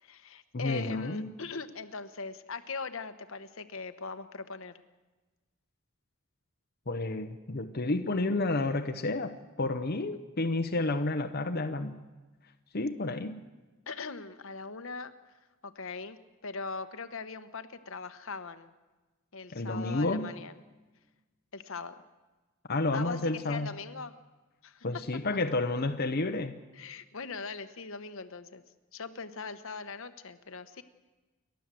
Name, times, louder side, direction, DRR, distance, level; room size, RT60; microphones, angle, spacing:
voice 1, 0.0-4.8 10.1-10.2 13.9-15.1 15.6-18.7 19.3-20.6 21.5-21.9 22.9-24.1 24.6-25.0 26.7-28.6 28.9-30.8, left 4 dB, 70° left, 10 dB, 1.1 m, -40 dB
voice 2, 0.5-1.3 6.9-12.0 12.7-13.4 19.5-20.3 22.7-23.7 24.8-26.5, left 2 dB, 50° left, 5 dB, 0.9 m, -30 dB
29.5 x 12.0 x 7.6 m, 1.2 s
head